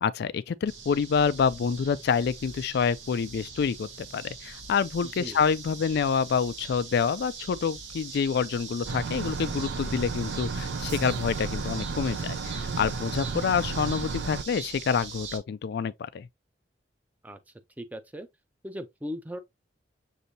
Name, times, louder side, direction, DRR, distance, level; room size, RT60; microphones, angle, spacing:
voice 1, 0.0-16.3, left 6 dB, 60° left, 0.3 m, -27 dB
sound 1, 0.7-15.4, right 5 dB, 85° right, 1.1 m, -42 dB
voice 2, 5.0-5.4 17.2-17.4 17.8-18.3 18.6-19.4, equal, 10° right, 0.5 m, -38 dB
sound 2, 8.9-14.4, right 4 dB, 70° right, 0.4 m, -33 dB
6.6 x 2.7 x 2.7 m
head